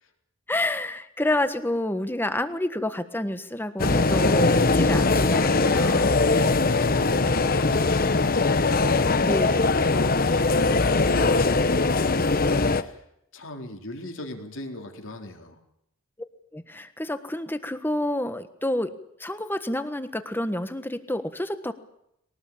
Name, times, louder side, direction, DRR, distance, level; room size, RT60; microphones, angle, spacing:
voice 1, 0.5-6.2 9.2-9.8 16.5-18.9 19.2-21.7, left 1 dB, 10° left, 10 dB, 1.4 m, -29 dB
sound 1, 3.8-12.8, left 3 dB, 40° left, 1.0 m, -21 dB
voice 2, 6.3-9.2 9.6-13.0 13.3-15.6, left 1 dB, 60° left, 3 dB, 3.8 m, -38 dB
22.0 x 18.5 x 8.7 m, 0.77 s
head